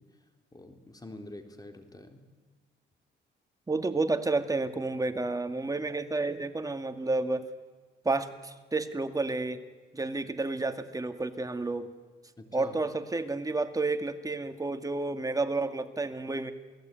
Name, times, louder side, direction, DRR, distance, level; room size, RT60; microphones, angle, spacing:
voice 1, 0.5-2.3 12.4-12.8, left 1 dB, 20° left, 5 dB, 3.7 m, -46 dB
voice 2, 3.7-7.5 8.0-9.6 9.9-11.9 12.5-16.5, right 3 dB, 15° right, 8 dB, 2.1 m, -30 dB
27.5 x 18.5 x 9.2 m, 1.4 s
cardioid pair, 90°, 20 cm